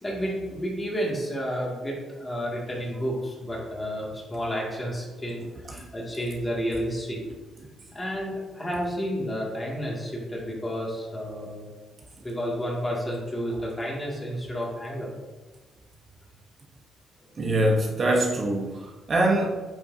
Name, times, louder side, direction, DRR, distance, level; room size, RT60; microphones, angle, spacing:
voice 1, 0.0-5.4 5.7-7.2 7.9-11.7 12.2-15.1, equal, 20° left, 2.3 m, -31 dB
voice 2, 17.4-19.5, right 1 dB, 40° right, 1.0 m, -23 dB
8.8 x 5.6 x 2.8 m
cardioid pair, 90°, 0 cm